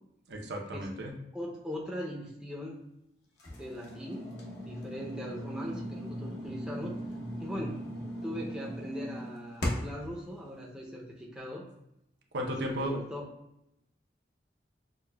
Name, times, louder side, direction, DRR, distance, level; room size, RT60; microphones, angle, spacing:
voice 1, 0.3-1.1 12.3-13.0, equal, 80° right, 0 dB, 0.7 m, -34 dB
voice 2, 1.3-2.8 3.5-4.3 4.7-6.9 7.4-7.9 8.2-11.6 12.5-13.2, equal, 5° right, -4 dB, 0.5 m, -40 dB
sound 1, 3.4-10.1, equal, 75° left, 0.8 m, -38 dB
6.3 x 2.1 x 2.2 m, 0.83 s
head